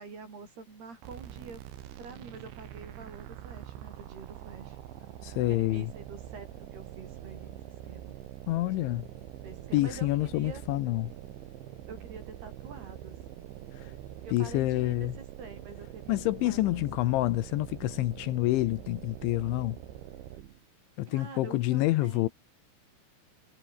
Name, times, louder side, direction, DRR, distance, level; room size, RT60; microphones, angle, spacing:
voice 1, 0.0-1.6 2.0-4.8 5.5-7.6 7.8-8.2 9.4-10.6 11.9-13.5 14.2-17.3 21.1-22.3, right 4 dB, 55° right, 8.6 m, -47 dB
sound 1, 1.0-20.7, right 12 dB, 70° right, 4.0 m, -44 dB
voice 2, 5.2-5.9 8.5-9.1 9.7-11.1 13.8-13.9 14.3-15.1 16.1-19.8 21.0-22.3, left 17 dB, 75° left, 3.2 m, -28 dB
omnidirectional pair, 5.6 m